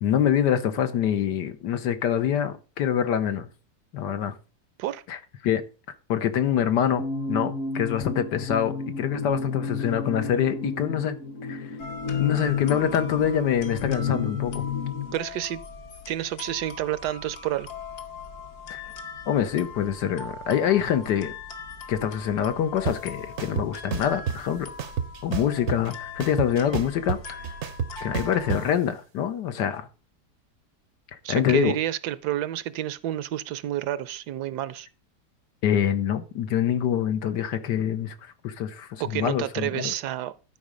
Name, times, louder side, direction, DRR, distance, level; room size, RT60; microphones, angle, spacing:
voice 1, 0.0-3.5 3.9-4.3 5.1-5.2 5.4-5.6 6.1-7.0 7.3-11.1 11.4-11.7 12.2-14.6 18.7-18.8 19.3-21.3 21.9-24.7 25.2-27.5 28.0-29.9 31.1-31.8 35.6-39.9, left 9 dB, 85° left, 1.6 m, -25 dB
sound 1, 7.0-15.1, left 5 dB, 50° left, 1.3 m, -31 dB
sound 2, 11.8-28.7, left 4 dB, 65° left, 1.8 m, -41 dB
voice 2, 15.1-15.6 16.1-17.7 31.2-34.9 39.0-40.3, right 13 dB, 75° right, 1.1 m, -29 dB
sound 3, 22.9-23.0 23.4-24.4 24.8-25.9 26.2-28.6, right 8 dB, 60° right, 0.8 m, -29 dB
11.5 x 4.9 x 5.1 m
omnidirectional pair, 1.8 m